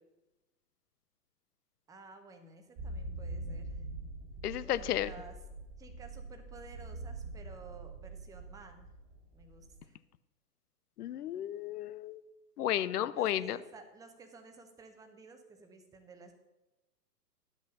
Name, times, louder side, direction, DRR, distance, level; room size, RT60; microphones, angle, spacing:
voice 1, 1.9-3.8 4.6-5.4 5.8-8.9 9.3-10.0 13.1-16.4, right 4 dB, 5° right, 6 dB, 0.7 m, -53 dB
sound 1, 2.8-9.8, right 2 dB, 35° right, 1.5 m, -44 dB
voice 2, 4.4-5.1 11.0-12.2 12.6-13.6, left 12 dB, 70° left, 16 dB, 0.7 m, -33 dB
11.5 x 6.2 x 5.5 m, 1.0 s
hypercardioid pair, 125°, 48 cm